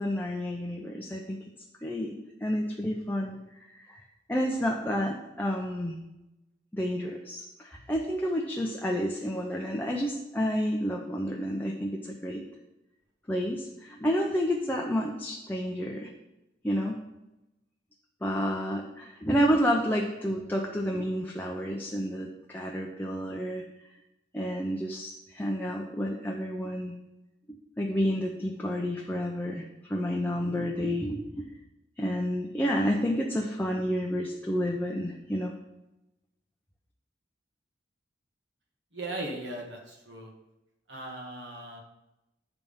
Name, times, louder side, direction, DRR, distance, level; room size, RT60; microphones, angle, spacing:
voice 1, 0.0-1.4 1.8-3.4 3.7-4.0 4.3-6.0 6.7-12.4 13.3-16.1 16.6-17.0 18.2-23.6 24.3-27.0 27.8-31.5 32.0-35.5, equal, 10° left, -1 dB, 0.6 m, -30 dB
voice 2, 38.9-40.3 40.9-41.8, right 1 dB, 70° right, 0 dB, 1.7 m, -38 dB
9.5 x 3.5 x 5.4 m, 0.96 s
head